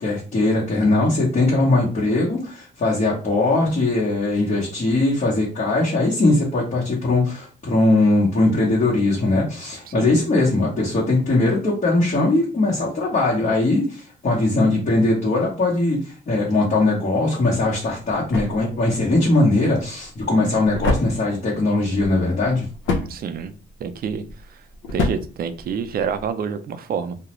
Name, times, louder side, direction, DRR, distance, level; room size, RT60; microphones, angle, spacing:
voice 1, 0.0-22.7, left 2 dB, 40° left, -6 dB, 0.9 m, -20 dB
voice 2, 9.9-10.2 23.1-23.5 23.8-24.2 24.5-24.6 24.9-27.2, right 7 dB, 50° right, 10 dB, 0.4 m, -28 dB
sound 1, 17.4-26.3, left 2 dB, 75° left, 0.7 m, -30 dB
2.3 x 2.0 x 3.0 m, 0.39 s
cardioid pair, 90°, 20 cm